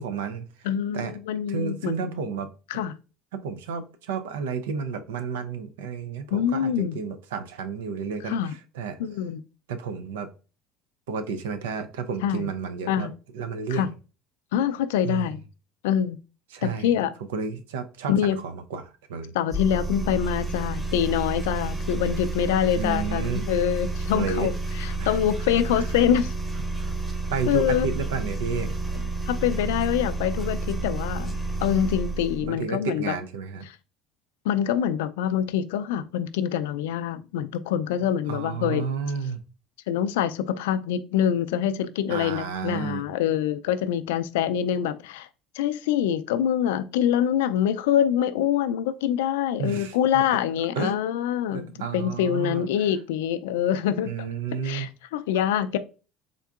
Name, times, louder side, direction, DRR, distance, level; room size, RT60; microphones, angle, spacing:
voice 1, 0.0-0.5 0.9-1.1 1.5-2.5 3.3-8.4 8.7-9.0 9.7-10.3 11.1-13.1 13.3-13.9 15.0-15.3 16.5-16.9 17.3-18.8 19.1-19.3 22.8-23.4 24.1-24.5 25.0-25.1 25.7-25.8 27.3-28.7 32.4-33.7 38.3-39.4 42.1-43.0 49.6-50.2 50.8-51.0 51.5-52.7 54.0-54.9, right 5 dB, 85° right, 0.4 m, -31 dB
voice 2, 0.6-2.2 2.7-2.9 6.3-7.0 8.2-8.5 9.0-9.4 12.2-12.5 12.9-13.1 13.7-13.9 14.5-15.4 15.8-16.2 16.6-17.1 18.1-18.4 19.3-26.3 27.5-27.9 29.3-33.1 33.7-33.8 34.5-38.8 39.9-45.3 45.5-54.3 54.6-55.8, left 9 dB, 85° left, 0.3 m, -25 dB
sound 1, 19.5-32.5, right 2 dB, 15° right, 1.0 m, -30 dB
3.6 x 3.6 x 2.4 m
hypercardioid pair, 75°, 0 cm